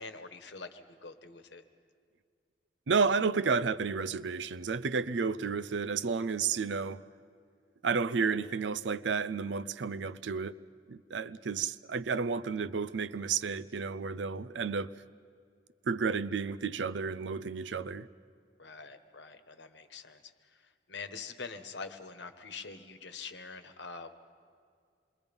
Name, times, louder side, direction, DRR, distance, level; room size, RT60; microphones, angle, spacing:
voice 1, 0.0-1.6 18.6-20.3 20.9-24.1, left 4 dB, 75° left, 1.2 m, -45 dB
voice 2, 2.9-7.0 7.8-10.6 10.9-15.0 15.8-18.1, right 5 dB, 80° right, 0.5 m, -31 dB
27.0 x 22.0 x 5.3 m
head